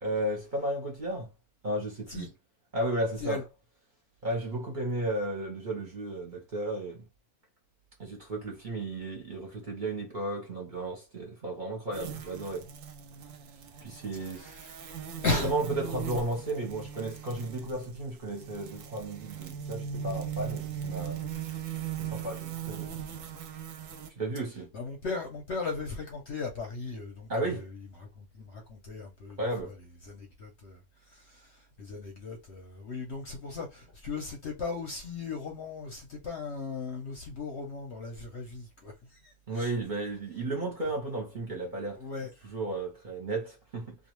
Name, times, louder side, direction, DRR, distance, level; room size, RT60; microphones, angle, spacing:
voice 1, 0.0-1.3 1.6-2.3 2.7-3.4 4.2-7.0 8.0-12.7 13.8-14.5 15.4-21.2 22.0-23.0 24.2-24.7 27.3-27.7 29.4-29.8 39.5-42.0 42.4-43.9, right 1 dB, 40° right, 0.8 m, -34 dB
sound 1, 11.9-24.1, right 8 dB, 70° right, 0.9 m, -39 dB
voice 2, 14.3-14.8 15.2-15.5 24.7-29.7 30.0-39.7 42.0-42.3, left 3 dB, 60° left, 0.8 m, -37 dB
2.4 x 2.3 x 3.0 m
omnidirectional pair, 1.6 m